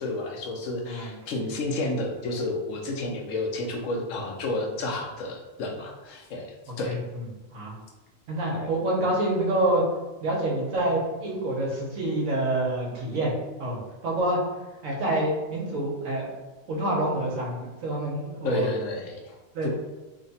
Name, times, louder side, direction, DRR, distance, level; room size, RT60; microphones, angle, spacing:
voice 1, 0.0-6.5 6.8-7.0 8.5-8.7 18.4-19.4 19.6-19.7, left 2 dB, 70° left, 1 dB, 1.0 m, -31 dB
voice 2, 8.3-9.8 10.2-13.3 13.6-13.8 14.0-14.4 14.8-16.3 16.7-18.7 19.5-19.7, right 1 dB, 70° right, -2 dB, 1.3 m, -27 dB
3.2 x 2.2 x 4.0 m, 1.1 s
omnidirectional pair, 1.4 m